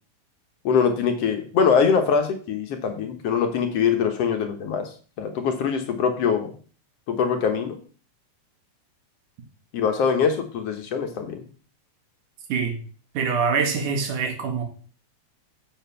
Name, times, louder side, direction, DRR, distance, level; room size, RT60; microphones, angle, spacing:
voice 1, 0.6-4.9 5.2-6.5 7.1-7.8 9.7-11.4, left 6 dB, 60° left, 5 dB, 1.9 m, -23 dB
voice 2, 13.2-14.6, right 5 dB, 85° right, 3 dB, 3.3 m, -24 dB
7.3 x 6.9 x 5.6 m, 0.40 s
omnidirectional pair, 3.5 m